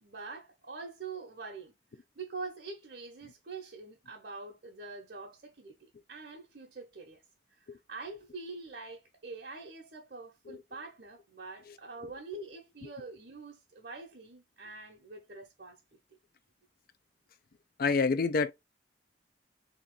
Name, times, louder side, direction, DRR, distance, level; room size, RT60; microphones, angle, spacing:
voice 1, 0.0-1.7 2.2-7.2 7.9-16.0, right 3 dB, 55° right, 1.0 m, -45 dB
voice 2, 17.8-18.5, left 4 dB, 55° left, 0.5 m, -27 dB
3.8 x 3.0 x 3.7 m
head